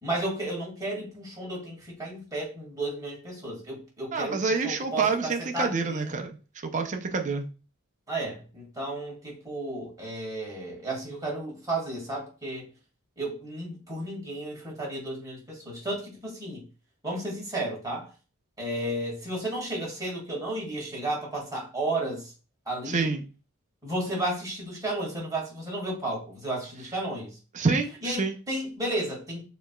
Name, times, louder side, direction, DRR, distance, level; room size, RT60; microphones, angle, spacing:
voice 1, 0.0-6.3 8.1-12.7 13.2-16.6 17.0-18.1 18.6-22.3 22.7-23.1 23.8-27.3 28.0-29.4, right 1 dB, 15° right, 2.0 m, -33 dB
voice 2, 4.1-6.3 6.6-7.5 22.9-23.2 27.5-28.4, right 4 dB, 35° right, 0.5 m, -27 dB
6.8 x 3.0 x 2.2 m
head